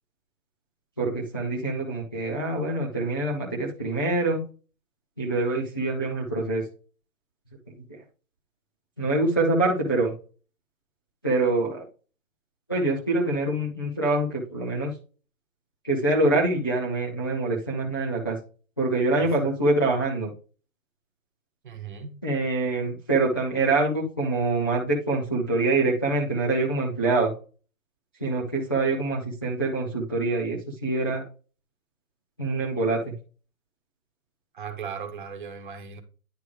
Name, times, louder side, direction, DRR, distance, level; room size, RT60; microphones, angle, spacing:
voice 1, 1.0-4.4 5.2-6.6 9.0-10.1 11.2-11.8 12.7-14.9 15.8-18.4 18.8-20.3 22.2-27.3 28.2-31.2 32.4-33.1, right 2 dB, 15° left, 0.5 m, -25 dB
voice 2, 21.6-22.1 34.5-36.0, right 6 dB, 35° right, 1.3 m, -37 dB
9.8 x 3.3 x 4.7 m
hypercardioid pair, 165°, 43 cm